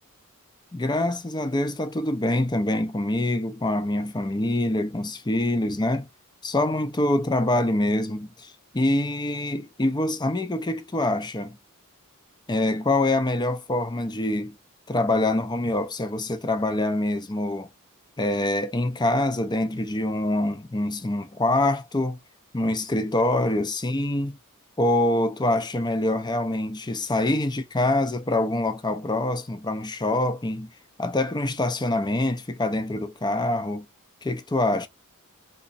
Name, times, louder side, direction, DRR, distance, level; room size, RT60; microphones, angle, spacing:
voice 1, 0.7-6.1 6.4-11.6 12.5-14.6 14.9-17.7 18.2-22.2 22.5-24.4 24.8-30.7 31.0-33.9 34.2-34.9, left 1 dB, 20° left, 0.6 m, -25 dB
3.7 x 3.1 x 2.5 m
head